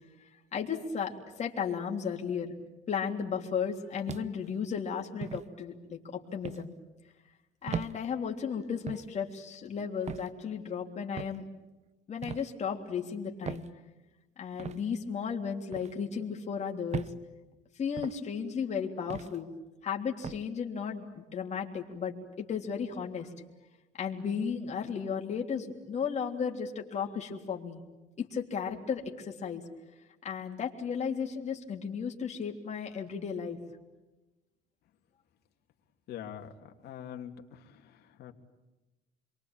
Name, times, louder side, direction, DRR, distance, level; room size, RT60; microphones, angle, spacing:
voice 1, 0.2-2.6 2.9-6.7 7.6-11.4 12.1-13.7 14.4-17.1 17.8-19.5 19.8-23.3 24.0-27.8 28.2-29.6 30.2-33.6, left 6 dB, 40° left, 0 dB, 3.4 m, -34 dB
sound 1, 4.1-4.5 5.2-5.5 6.4-6.7 7.7-7.9 8.9-9.1 10.1-10.3 11.2-11.4 12.2-12.5 13.4-13.7 14.6-14.8 15.7-15.9 16.9-17.2 18.0-18.2 19.1-19.4 20.2-20.4, right 7 dB, 40° right, 0.9 m, -38 dB
voice 2, 36.1-38.3, left 9 dB, 75° left, 3 dB, 2.8 m, -44 dB
28.5 x 23.0 x 9.0 m, 1.1 s
cardioid pair, 110°, 17 cm